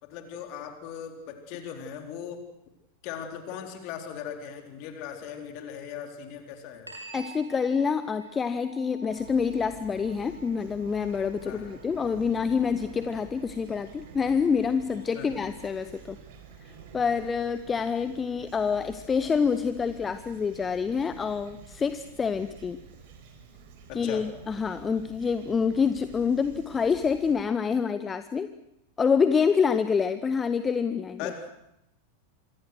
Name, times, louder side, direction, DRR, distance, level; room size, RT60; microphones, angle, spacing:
voice 1, 0.0-2.4 3.0-6.9 11.5-11.7 15.2-15.3 23.9-24.3 31.2-31.5, left 8 dB, 45° left, 5 dB, 4.0 m, -39 dB
sound 1, 6.9-15.9, right 3 dB, 90° right, 4.8 m, -51 dB
voice 2, 7.1-16.2 16.9-22.8 23.9-28.5 29.0-31.3, left 6 dB, 20° left, 12 dB, 0.9 m, -27 dB
Fowl / Chirp tweet, 9.1-27.4, right 6 dB, 50° right, 4.9 m, -49 dB
27.0 x 23.5 x 6.5 m, 0.81 s
figure-of-eight pair, 90°, 0 cm